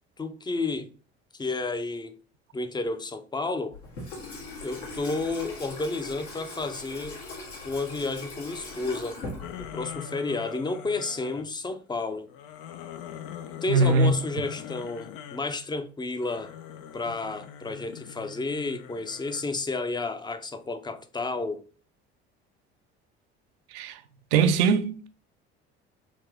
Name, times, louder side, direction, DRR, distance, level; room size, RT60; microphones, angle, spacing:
voice 1, 0.2-0.9 1.4-2.1 2.5-3.8 4.6-7.2 7.6-9.2 9.6-12.3 13.6-16.5 16.9-21.6, left 3 dB, 15° left, 0.5 m, -31 dB
Water tap faucet / Sink (filling or washing), 3.7-10.0, left 2 dB, 80° left, 1.6 m, -40 dB
sound 1, 9.4-11.5 12.3-15.5 16.1-19.6, left 10 dB, 65° left, 0.5 m, -42 dB
voice 2, 13.7-14.1 23.7-24.0 24.3-25.1, right 4 dB, 70° right, 0.5 m, -21 dB
3.6 x 2.7 x 3.4 m
hypercardioid pair, 55°, 33 cm